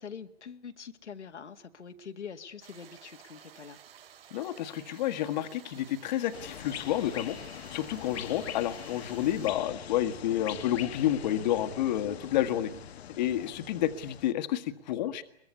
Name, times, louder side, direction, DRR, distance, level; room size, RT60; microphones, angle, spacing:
voice 1, 0.0-3.8, left 6 dB, 90° left, 6 dB, 2.0 m, -44 dB
sound 1, 2.6-9.5, right 9 dB, 55° right, 5.7 m, -53 dB
voice 2, 4.3-7.4 7.7-12.7 13.2-15.2, left 12 dB, 40° left, 9 dB, 1.6 m, -30 dB
sound 2, 6.3-14.3, left 10 dB, 65° left, 1.1 m, -43 dB
22.5 x 22.0 x 9.6 m, 0.69 s
hypercardioid pair, 145°, 34 cm